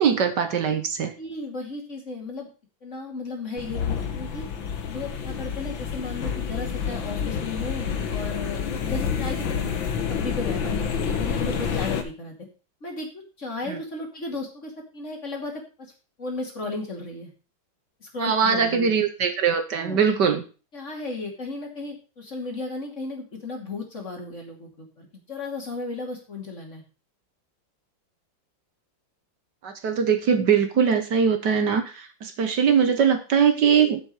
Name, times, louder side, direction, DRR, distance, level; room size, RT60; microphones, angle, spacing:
voice 1, 0.0-1.1 13.7-13.8 18.2-20.4 29.6-34.0, right 7 dB, 65° right, 8 dB, 1.7 m, -21 dB
voice 2, 1.2-2.5 2.8-4.5 4.9-9.6 10.1-12.3 12.8-15.9 16.2-17.3 18.0-18.9 19.8-20.0 20.7-26.8 30.8-31.0, left 3 dB, 40° left, 1 dB, 2.9 m, -35 dB
sound 1, 3.6-12.0, left 7 dB, 80° left, 2.1 m, -28 dB
7.7 x 7.5 x 6.6 m, 0.34 s
omnidirectional pair, 2.1 m